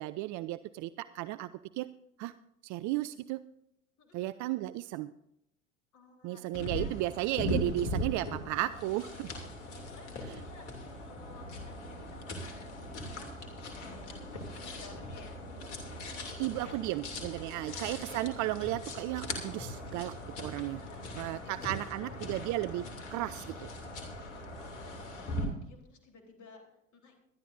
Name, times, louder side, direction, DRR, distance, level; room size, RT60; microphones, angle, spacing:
voice 1, 0.0-1.5 1.8-1.9 2.2-2.3 2.6-3.4 4.1-5.1 6.2-9.3 16.4-20.8 21.2-23.7, right 16 dB, 45° right, 15 dB, 0.5 m, -34 dB
voice 2, 4.0-4.7 5.9-6.9 9.8-10.7 11.0-15.4 16.6-17.0 17.6-18.0 20.3-22.3 24.5-27.1, left 4 dB, 45° left, 2 dB, 3.8 m, -56 dB
sound 1, 6.5-25.4, left 1 dB, 70° left, 2.8 m, -40 dB
21.5 x 12.0 x 2.6 m, 0.77 s
hypercardioid pair, 70°, 40 cm